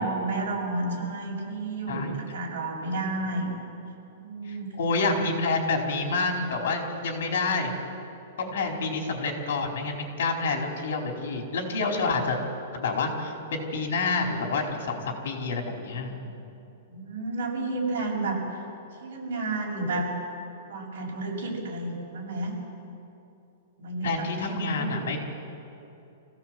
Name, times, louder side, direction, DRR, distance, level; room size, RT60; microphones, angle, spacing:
voice 1, 0.0-3.5 4.1-4.7 16.9-18.4 19.0-20.1 20.7-22.5 23.8-25.1, right 2 dB, 60° right, -2 dB, 7.4 m, -31 dB
voice 2, 4.4-7.7 8.4-12.4 12.7-16.5 24.0-25.2, left 3 dB, 65° left, 1 dB, 4.6 m, -28 dB
25.5 x 16.5 x 7.9 m, 2.8 s
supercardioid pair, 175°, 0 cm